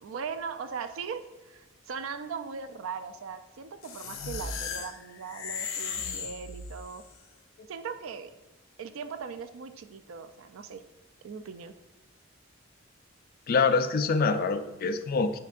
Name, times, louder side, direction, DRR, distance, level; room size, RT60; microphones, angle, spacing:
voice 1, 0.0-7.0 7.7-8.3 8.8-10.8 11.2-11.7, right 6 dB, 80° right, 11 dB, 0.4 m, -39 dB
sound 1, 3.8-7.1, left 5 dB, 85° left, 0.6 m, -36 dB
voice 2, 13.5-15.4, left 4 dB, 50° left, 9 dB, 0.4 m, -25 dB
5.8 x 3.7 x 2.5 m, 1.1 s
head